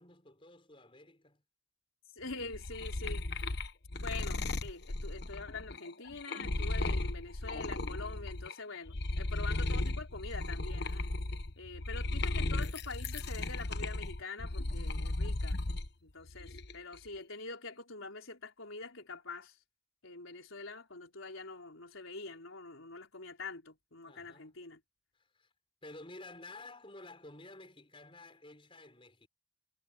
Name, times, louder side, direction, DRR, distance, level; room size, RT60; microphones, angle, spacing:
voice 1, 0.0-1.4 24.0-24.6 25.1-25.5 25.8-29.3, left 2 dB, 25° left, 4.9 m, -52 dB
voice 2, 2.2-3.5 4.0-11.1 11.6-15.6 16.0-19.6 20.0-24.8, left 3 dB, 80° left, 3.9 m, -45 dB
sound 1, 2.3-8.5 8.9-15.9 16.3-16.9, left 2 dB, 55° left, 1.2 m, -35 dB
head